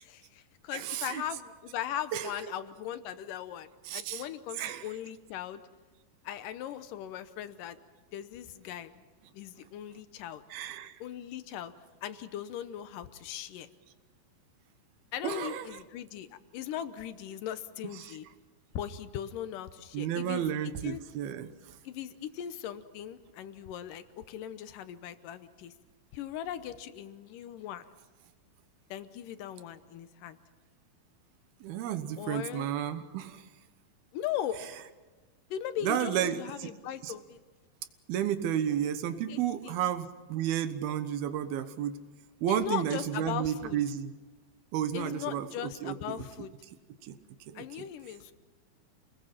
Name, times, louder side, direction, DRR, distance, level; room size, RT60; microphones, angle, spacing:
voice 1, 0.0-5.6 6.2-7.8 8.1-9.0 9.3-10.4 11.0-11.7 12.0-13.7 15.1-16.3 16.5-18.3 18.8-20.5 20.8-21.0 21.8-25.7 26.1-27.8 28.9-30.4 32.2-32.7 34.1-34.6 35.5-37.4 39.3-39.7 42.5-43.8 44.9-46.5 47.5-48.3, left 10 dB, 70° left, 11 dB, 2.3 m, -39 dB
voice 2, 0.7-1.2 2.1-2.3 3.9-4.2 4.6-4.9 10.5-11.0 15.2-15.8 18.0-18.1 19.9-21.8 31.6-33.4 35.8-36.7 37.0-37.1 38.1-42.0 42.4-44.1 44.7-46.2 47.0-47.2 47.5-47.6, right 10 dB, 90° right, 10 dB, 3.0 m, -32 dB
29.0 x 20.0 x 5.8 m, 1.3 s
omnidirectional pair, 4.2 m